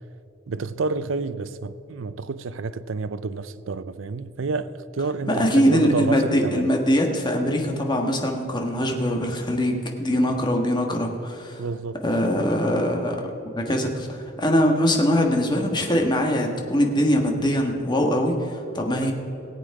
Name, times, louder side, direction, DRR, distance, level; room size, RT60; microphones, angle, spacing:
voice 1, 0.5-6.8 11.6-12.0, right 4 dB, 70° right, 0.5 m, -29 dB
voice 2, 5.3-11.6 12.0-13.2 13.5-19.1, equal, 25° left, 1.4 m, -22 dB
18.0 x 8.3 x 4.8 m
head